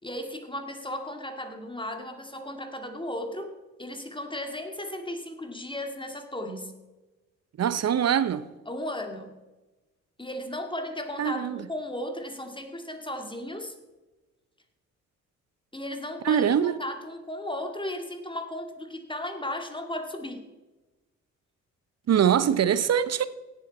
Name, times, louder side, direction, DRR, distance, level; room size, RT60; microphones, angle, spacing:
voice 1, 0.0-3.5 3.8-6.7 8.7-9.4 10.2-13.7 15.7-20.4, left 1 dB, 15° left, 2.2 m, -35 dB
voice 2, 7.6-8.4 11.2-11.6 16.2-16.7 22.1-23.3, right 9 dB, 45° right, 0.8 m, -23 dB
17.0 x 7.6 x 4.3 m
hypercardioid pair, 45°, 37 cm